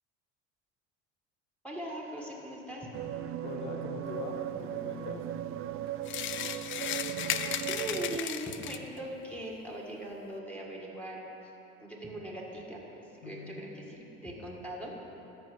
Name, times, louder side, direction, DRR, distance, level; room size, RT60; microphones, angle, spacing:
voice 1, 1.6-2.9 7.7-11.5 11.8-15.0, right 1 dB, 5° left, -2 dB, 1.6 m, -40 dB
sound 1, 2.9-8.2, right 12 dB, 40° right, 0.4 m, -37 dB
voice 2, 3.4-5.3 13.2-13.6, left 4 dB, 85° left, 2 dB, 1.3 m, -41 dB
sound 2, 6.0-9.0, left 10 dB, 35° left, 0.4 m, -35 dB
13.5 x 4.9 x 5.1 m, 3.0 s
supercardioid pair, 90°, 34 cm